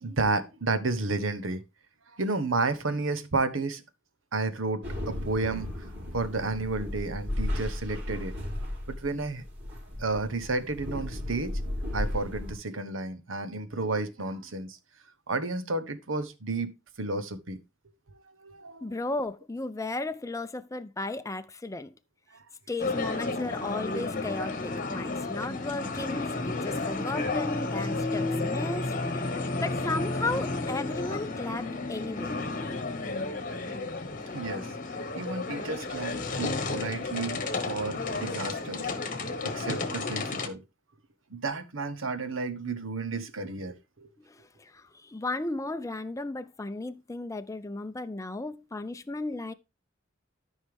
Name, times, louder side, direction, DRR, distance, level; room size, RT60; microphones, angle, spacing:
voice 1, 0.0-1.6 2.1-3.8 4.3-5.7 6.1-8.3 8.9-9.4 10.0-11.6 11.9-14.8 15.3-16.7 17.0-17.6 18.4-18.8 34.3-38.9 39.4-40.6 41.3-44.1, right 3 dB, 80° right, 1.1 m, -32 dB
sound 1, 4.8-12.5, left 1 dB, 60° right, 4.1 m, -35 dB
voice 2, 18.8-21.9 22.7-32.3 44.2-49.5, left 2 dB, 15° left, 0.6 m, -35 dB
sound 2, 22.8-40.5, left 3 dB, 45° left, 1.3 m, -32 dB
13.0 x 5.5 x 3.5 m
head